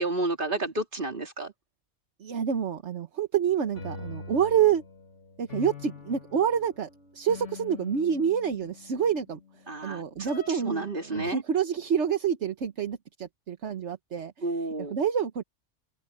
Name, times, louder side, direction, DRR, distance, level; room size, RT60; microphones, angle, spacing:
voice 1, 0.0-1.5 9.7-11.4 14.4-15.0, right 2 dB, 45° right, 3.0 m, -31 dB
voice 2, 2.2-4.8 5.4-9.4 9.8-14.3 14.9-15.4, right 8 dB, 65° right, 1.4 m, -27 dB
sound 1, 3.6-9.2 10.3-10.8 11.2-11.3, left 4 dB, 75° left, 2.7 m, -43 dB
omnidirectional pair, 1.3 m